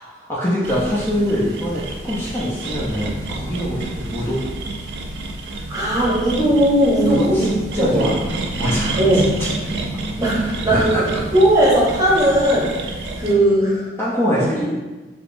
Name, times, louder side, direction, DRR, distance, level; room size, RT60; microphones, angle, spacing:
voice 1, 0.0-4.4 7.0-7.5 7.7-8.1 8.5-9.2 10.2-11.2 14.0-14.7, equal, 15° left, -8 dB, 0.5 m, -24 dB
sound 1, 0.6-13.3, right 2 dB, 70° right, 0.4 m, -29 dB
voice 2, 5.7-7.5 7.8-8.1 9.0-9.3 10.2-12.7 13.2-13.9 14.3-14.5, right 1 dB, 20° right, -6 dB, 0.8 m, -17 dB
3.4 x 2.8 x 2.5 m, 1.2 s
head